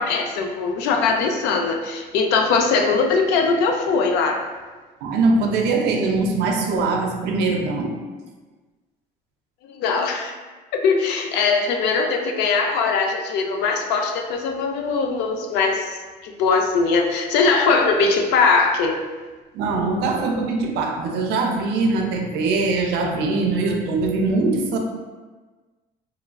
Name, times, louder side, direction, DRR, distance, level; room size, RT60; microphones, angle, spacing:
voice 1, 0.0-4.5 9.6-10.3 10.7-19.0, left 4 dB, 90° left, 3 dB, 0.4 m, -21 dB
voice 2, 5.0-8.0 19.5-24.8, right 3 dB, 80° right, 3 dB, 0.4 m, -22 dB
3.1 x 2.3 x 2.2 m, 1.3 s
cardioid pair, 110°, 17 cm